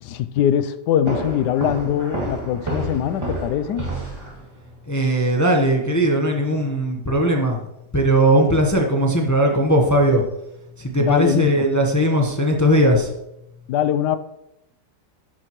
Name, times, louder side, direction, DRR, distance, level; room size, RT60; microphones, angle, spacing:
voice 1, 0.0-3.9 11.0-11.7 13.7-14.2, left 10 dB, 75° left, 13 dB, 1.2 m, -22 dB
sound 1, 1.1-4.8, right 2 dB, 15° right, 2.4 m, -29 dB
voice 2, 4.9-7.6 7.9-10.2 10.8-13.1, right 1 dB, 15° left, 1 dB, 0.8 m, -18 dB
12.0 x 8.8 x 3.1 m, 0.86 s
omnidirectional pair, 1.9 m